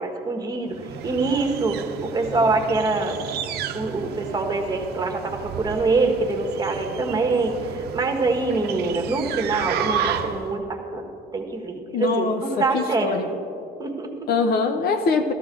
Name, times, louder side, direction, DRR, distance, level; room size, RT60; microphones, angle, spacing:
voice 1, 0.0-3.2 3.7-13.4 13.8-14.1, right 3 dB, 20° right, 2 dB, 1.5 m, -25 dB
sound 1, 0.7-10.6, right 8 dB, 70° right, 0.7 m, -32 dB
voice 2, 11.9-13.3 14.3-15.3, left 4 dB, 65° left, 7 dB, 0.9 m, -23 dB
14.0 x 13.5 x 3.8 m, 2.7 s
cardioid pair, 110°, 17 cm